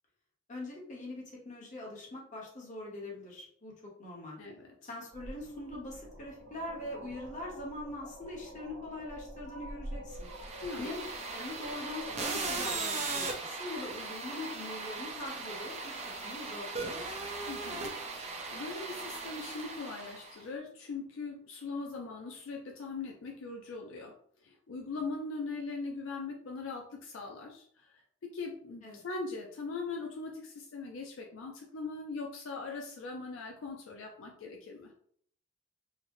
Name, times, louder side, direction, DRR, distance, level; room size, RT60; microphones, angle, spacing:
voice 1, 0.5-3.7 4.0-4.4 4.9-10.3 10.8-11.0 11.3-17.0 28.8-29.0, left 2 dB, 40° left, -3 dB, 1.0 m, -42 dB
voice 2, 4.4-4.9 10.6-10.9 17.5-24.1 24.4-27.9 28.3-34.9, left 3 dB, 80° left, 1 dB, 0.4 m, -41 dB
sound 1, 5.1-12.7, right 1 dB, 85° right, 0.8 m, -47 dB
sound 2, 10.2-20.4, right 3 dB, 35° right, 0.6 m, -38 dB
3.8 x 2.1 x 3.0 m, 0.64 s
head